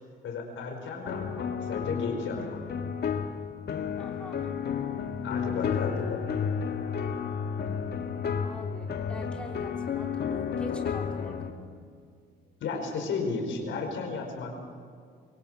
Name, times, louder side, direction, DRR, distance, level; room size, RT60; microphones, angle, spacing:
voice 1, 0.2-2.6 5.2-6.2 12.6-14.5, left 4 dB, 75° left, 3 dB, 5.0 m, -34 dB
sound 1, 1.1-11.5, left 7 dB, 55° left, 1.8 m, -32 dB
voice 2, 4.0-4.4 5.7-6.2 8.4-11.7, left 1 dB, 5° left, 0 dB, 3.4 m, -44 dB
24.0 x 17.5 x 6.2 m, 2.2 s
cardioid pair, 90°, 20 cm